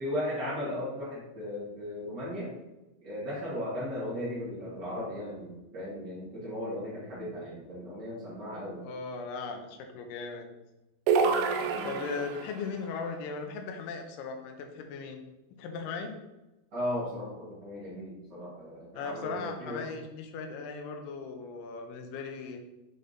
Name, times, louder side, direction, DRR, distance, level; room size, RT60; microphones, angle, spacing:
voice 1, 0.0-2.5 3.0-8.8 11.2-12.2 16.7-19.9, left 1 dB, 45° right, -9 dB, 1.4 m, -36 dB
voice 2, 8.8-10.5 11.8-15.2 15.6-16.2 18.9-22.6, left 4 dB, 80° left, 4 dB, 2.1 m, -38 dB
sound 1, 11.1-12.6, right 5 dB, 80° right, 2.2 m, -27 dB
7.0 x 3.7 x 3.8 m, 0.99 s
omnidirectional pair, 4.5 m